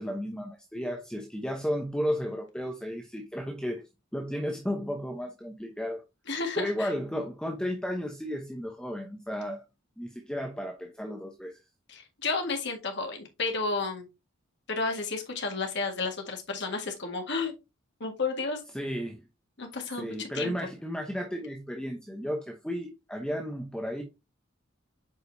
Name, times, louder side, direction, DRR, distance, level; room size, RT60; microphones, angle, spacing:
voice 1, 0.0-3.8 4.1-6.0 6.5-9.6 10.0-11.6 18.7-19.2 19.9-24.0, equal, 5° left, 0.9 m, -33 dB
voice 2, 6.3-6.9 11.9-14.1 14.7-17.5 18.0-18.6 19.6-20.5, left 3 dB, 60° left, 1.8 m, -32 dB
8.1 x 5.1 x 2.7 m
head